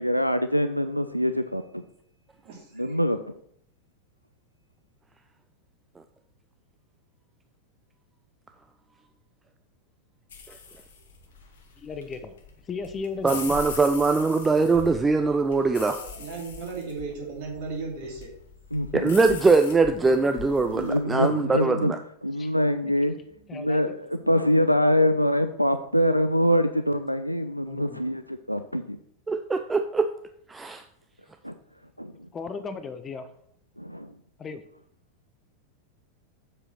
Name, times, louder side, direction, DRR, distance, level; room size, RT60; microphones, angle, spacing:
voice 1, 0.0-1.8 2.8-3.2 18.7-19.1 20.7-21.9 22.2-23.2 23.5-29.0 31.4-31.5 32.0-32.3 33.8-34.1, equal, 90° right, 10 dB, 0.4 m, -24 dB
voice 2, 2.4-3.0 15.9-18.3 23.6-24.0, right 4 dB, 50° right, -2 dB, 3.0 m, -37 dB
sound 1, 10.3-21.0, left 5 dB, 60° left, 1.8 m, -41 dB
voice 3, 11.8-12.3 12.7-13.5 21.1-21.7 22.4-22.5 22.8-22.9 23.5-23.9 27.7-28.0 32.3-33.3 34.4-34.6, left 4 dB, 20° left, 11 dB, 0.7 m, -36 dB
voice 4, 13.2-16.0 18.9-22.0 29.3-30.1 30.5-30.8, right 3 dB, 15° right, 8 dB, 0.4 m, -22 dB
7.7 x 4.9 x 5.8 m, 0.68 s
figure-of-eight pair, 90°, 0 cm